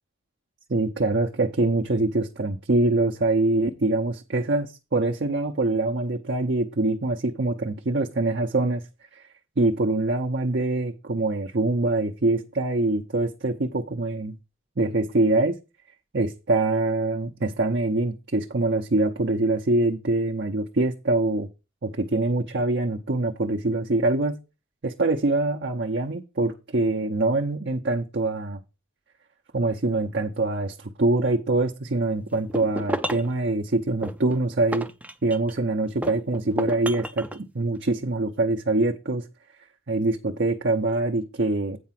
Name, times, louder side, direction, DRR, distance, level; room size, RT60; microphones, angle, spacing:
voice 1, 0.7-8.8 9.1-9.3 9.6-14.4 14.8-15.6 16.1-21.5 21.8-24.4 24.8-28.6 29.5-34.9 35.2-39.3 39.9-41.8, right 2 dB, 55° right, 0.8 m, -24 dB
sound 1, 32.3-33.4 34.0-35.6 36.0-37.4, right 1 dB, 5° right, 0.4 m, -32 dB
8.6 x 4.7 x 5.8 m
head